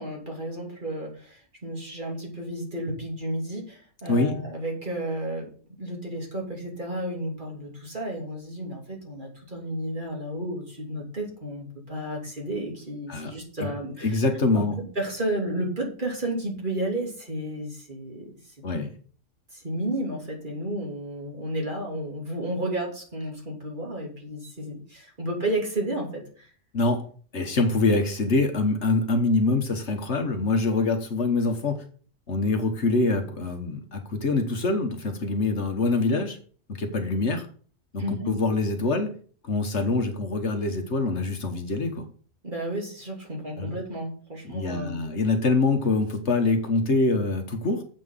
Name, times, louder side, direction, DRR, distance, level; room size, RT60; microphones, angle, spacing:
voice 1, 0.0-5.5 5.8-14.2 14.5-18.3 19.5-26.5 38.0-38.3 42.4-45.0, right 1 dB, 40° right, -1 dB, 3.1 m, -32 dB
voice 2, 14.0-14.8 18.6-18.9 26.7-27.1 27.3-31.8 32.3-36.4 36.7-37.5 37.9-39.1 39.4-42.1 43.5-43.7 44.4-47.8, left 3 dB, 60° left, 5 dB, 1.6 m, -25 dB
7.6 x 6.1 x 7.3 m, 0.43 s
omnidirectional pair, 1.3 m